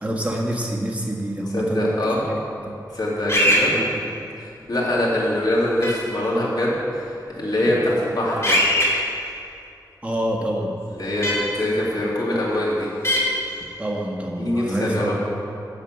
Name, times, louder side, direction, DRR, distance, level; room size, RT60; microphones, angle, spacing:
voice 1, 0.0-2.4 2.6-2.8 3.4-4.0 10.0-10.7 13.8-15.1, right 1 dB, 20° right, -2 dB, 1.5 m, -27 dB
voice 2, 1.5-2.2 2.9-3.7 4.4-8.7 10.9-12.9 14.4-15.1, left 1 dB, 60° left, -6 dB, 2.6 m, -23 dB
sound 1, 3.3-3.6 5.8-5.9 8.4-8.9 11.2-11.3 13.0-13.2, left 1 dB, 35° left, 2.5 m, -18 dB
8.9 x 6.9 x 5.9 m, 2.6 s
wide cardioid pair, 70°, 8 cm